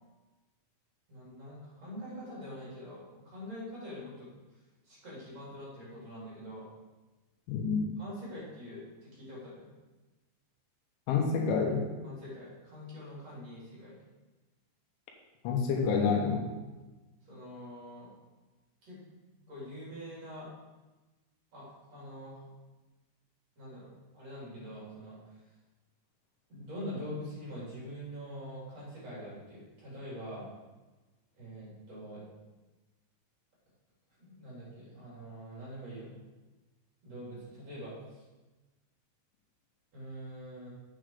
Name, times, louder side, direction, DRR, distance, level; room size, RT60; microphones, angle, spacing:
voice 1, 1.1-4.3 4.8-6.7 8.0-9.7 12.0-14.0 17.2-18.1 18.8-19.0 19.5-20.5 21.5-22.5 23.6-25.4 26.5-30.4 31.4-32.2 34.2-36.2 37.0-38.2 39.9-40.7, equal, 35° right, -7 dB, 4.4 m, -44 dB
voice 2, 7.5-7.8 11.1-11.9 15.5-16.4, left 5 dB, 80° left, 1 dB, 3.6 m, -28 dB
8.1 x 7.9 x 5.1 m, 1.2 s
omnidirectional pair, 5.4 m